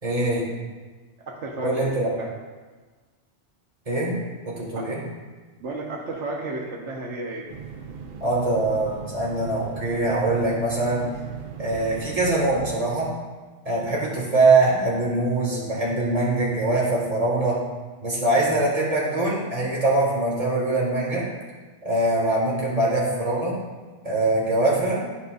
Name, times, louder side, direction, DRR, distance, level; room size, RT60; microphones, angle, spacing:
voice 1, 0.0-0.5 1.6-2.1 3.9-4.1 4.5-5.0 8.2-11.1 11.6-13.1 13.7-17.6 18.0-21.3 21.8-23.6 24.0-25.0, right 2 dB, 30° right, -6 dB, 2.1 m, -23 dB
voice 2, 1.2-2.3 4.7-4.9 5.6-7.5, right 2 dB, 85° right, -1 dB, 1.3 m, -33 dB
sound 1, 7.5-12.8, right 6 dB, 55° right, 0.7 m, -39 dB
11.5 x 5.3 x 2.5 m, 1.3 s
omnidirectional pair, 1.2 m